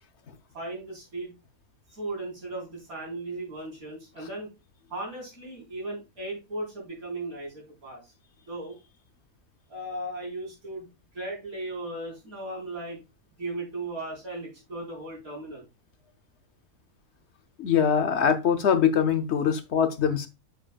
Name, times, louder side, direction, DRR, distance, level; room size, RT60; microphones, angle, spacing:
voice 1, 0.5-1.3 1.9-4.5 4.9-8.1 8.5-8.8 9.7-10.9 11.1-13.0 13.4-15.7, right 2 dB, 90° right, 4.6 m, -36 dB
voice 2, 17.6-20.3, left 7 dB, 60° left, 0.9 m, -23 dB
7.5 x 7.3 x 2.3 m
omnidirectional pair, 1.5 m